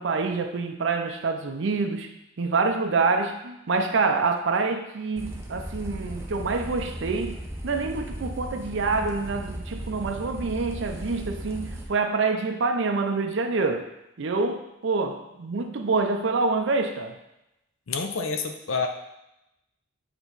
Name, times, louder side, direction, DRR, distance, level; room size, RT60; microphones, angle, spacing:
voice 1, 0.0-7.4 7.6-13.9 14.2-17.2, right 4 dB, 60° right, 5 dB, 0.5 m, -26 dB
sound 1, 5.2-11.8, equal, 15° right, 0.6 m, -36 dB
voice 2, 17.9-18.9, left 4 dB, 80° left, 5 dB, 0.6 m, -28 dB
8.0 x 3.0 x 4.0 m, 0.90 s
head